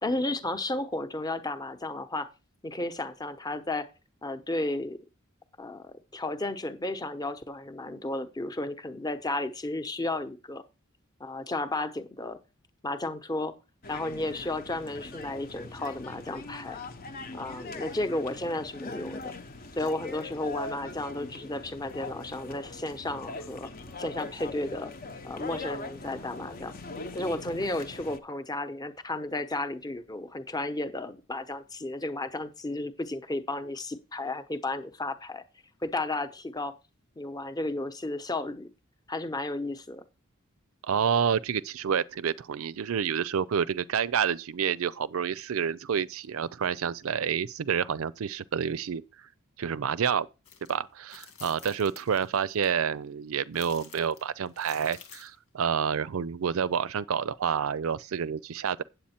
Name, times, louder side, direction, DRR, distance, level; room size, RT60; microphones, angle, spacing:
voice 1, 0.0-2.3 2.6-3.9 4.2-5.0 5.6-10.6 11.2-12.4 12.8-13.5 13.9-16.8 17.3-19.3 19.8-23.7 24.0-24.9 25.2-26.7 27.1-35.4 35.8-36.7 37.2-38.7 39.1-40.0, left 2 dB, 20° left, 0.9 m, -33 dB
sound 1, 13.8-28.2, left 3 dB, 45° left, 0.9 m, -41 dB
voice 2, 40.8-49.0 49.6-50.3 50.7-58.8, right 7 dB, 70° right, 0.5 m, -29 dB
sound 2, 50.5-50.7 51.1-52.7 53.5-55.4, left 7 dB, 85° left, 2.5 m, -49 dB
8.7 x 7.9 x 4.3 m
head